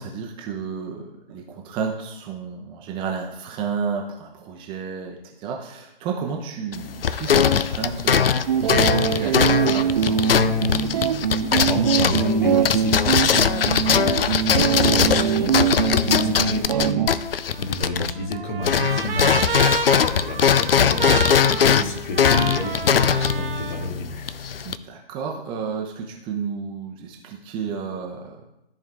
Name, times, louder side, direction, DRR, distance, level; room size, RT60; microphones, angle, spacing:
voice 1, 0.0-10.4 24.6-28.5, right 6 dB, 15° right, 0 dB, 0.8 m, -32 dB
sound 1, 6.7-18.4 18.6-24.8, left 7 dB, 70° left, 0.6 m, -21 dB
sound 2, 8.5-17.1, right 8 dB, 45° right, 0.5 m, -22 dB
voice 2, 11.5-24.3, left 1 dB, 55° left, 3 dB, 1.9 m, -31 dB
Trumpet, 17.5-23.9, right 4 dB, 70° right, 1.1 m, -30 dB
13.5 x 4.8 x 3.6 m, 0.86 s
figure-of-eight pair, 135°, 30 cm